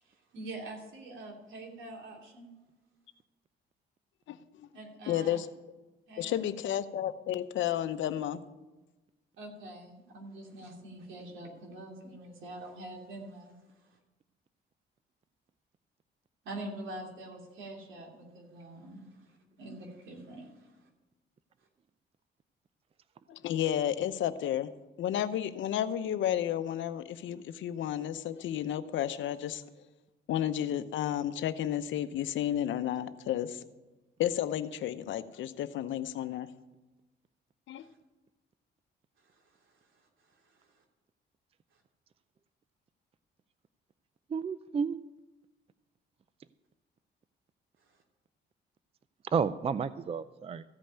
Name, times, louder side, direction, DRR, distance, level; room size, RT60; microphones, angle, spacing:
voice 1, 0.1-2.5 4.7-5.4 6.1-6.6 9.4-13.5 16.4-20.7 39.2-39.5 40.0-40.1 40.7-40.8, right 2 dB, 80° right, 3.1 m, -45 dB
voice 2, 4.3-4.7 5.1-5.5 6.2-8.4 23.3-24.7 25.0-29.6 30.3-33.6 34.2-36.5 37.7-37.8, left 11 dB, 75° left, 0.8 m, -32 dB
voice 3, 44.3-45.0 49.3-50.6, right 6 dB, 30° right, 0.4 m, -31 dB
14.5 x 5.3 x 8.9 m
cardioid pair, 90°, 20 cm